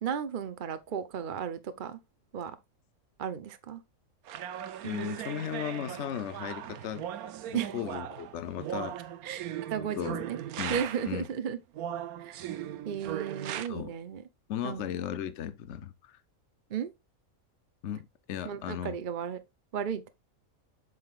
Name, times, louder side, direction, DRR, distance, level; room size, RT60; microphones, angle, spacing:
voice 1, 0.0-2.0 2.3-2.6 3.2-3.8 7.5-7.8 9.2-10.4 10.7-11.6 12.2-12.5 12.9-14.2 14.6-14.9 16.7-16.9 18.4-19.4 19.7-20.1, right 8 dB, 45° right, 0.7 m, -34 dB
sound 1, 4.3-11.2 11.7-13.7, right 10 dB, 90° right, 1.2 m, -38 dB
voice 2, 4.8-7.0 7.5-9.0 9.8-10.2 10.6-11.2 13.7-13.9 14.5-16.2 17.8-19.0, left 9 dB, 60° left, 1.0 m, -36 dB
7.8 x 5.7 x 2.4 m
omnidirectional pair, 1.5 m